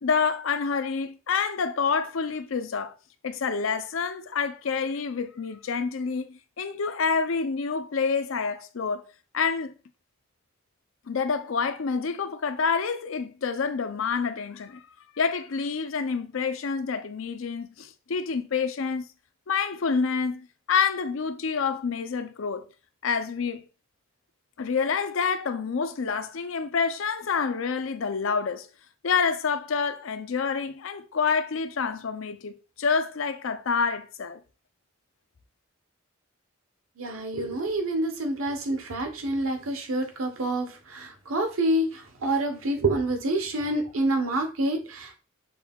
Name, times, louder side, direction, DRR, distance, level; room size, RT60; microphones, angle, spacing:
voice 1, 0.0-3.0 3.2-9.0 9.3-9.7 11.1-14.9 15.2-19.0 19.5-22.7 23.0-23.6 24.6-28.7 29.0-34.4, left 5 dB, 75° left, 0.5 m, -28 dB
voice 2, 37.0-45.2, right 1 dB, 85° right, 1.0 m, -27 dB
6.2 x 2.3 x 3.5 m
head